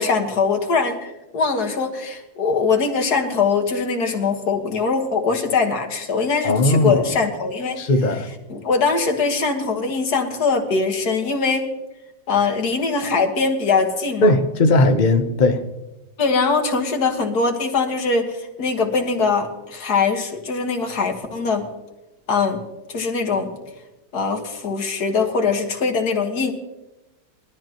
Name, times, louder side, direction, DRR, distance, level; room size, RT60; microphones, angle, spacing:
voice 1, 0.0-7.8 8.5-11.7 12.3-14.3 16.2-21.7 22.3-22.6 22.9-23.6 24.1-26.5, left 4 dB, 50° left, 1.9 m, -22 dB
voice 2, 6.4-7.0 7.8-8.3 14.2-15.6, left 2 dB, 80° left, 0.4 m, -17 dB
21.5 x 13.0 x 3.0 m
omnidirectional pair, 2.3 m